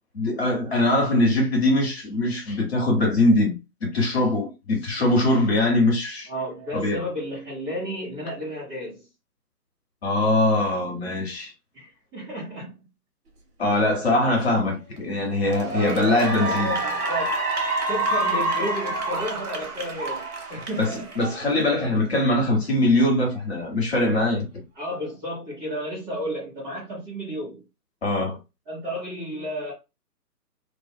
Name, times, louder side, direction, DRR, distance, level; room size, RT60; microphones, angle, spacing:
voice 1, 0.1-3.5 3.9-6.3 6.7-7.0 10.0-11.5 13.6-16.8 20.8-24.5 28.0-28.4, left 2 dB, 40° left, 0.9 m, -22 dB
voice 2, 6.3-9.0 11.7-12.7 15.7-17.5 17.9-20.2 20.5-21.1 24.8-27.6 28.7-29.7, equal, 15° right, 1.0 m, -32 dB
Cheering / Applause, 14.7-15.0 15.4-21.9, right 2 dB, 65° right, 1.2 m, -28 dB
2.6 x 2.3 x 2.2 m
figure-of-eight pair, 150°, 49 cm